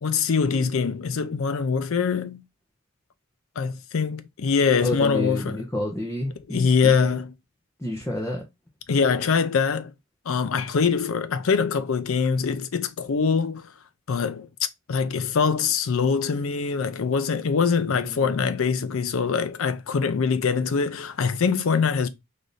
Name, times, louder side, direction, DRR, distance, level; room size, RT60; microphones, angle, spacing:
voice 1, 0.0-2.4 3.6-5.6 6.5-7.3 8.9-9.9 10.3-13.7 14.1-14.5 14.9-22.1, left 5 dB, 70° left, 0.5 m, -23 dB
voice 2, 4.8-7.1 7.8-8.4 17.9-18.5, left 1 dB, 10° left, 0.6 m, -30 dB
3.3 x 2.6 x 3.9 m
head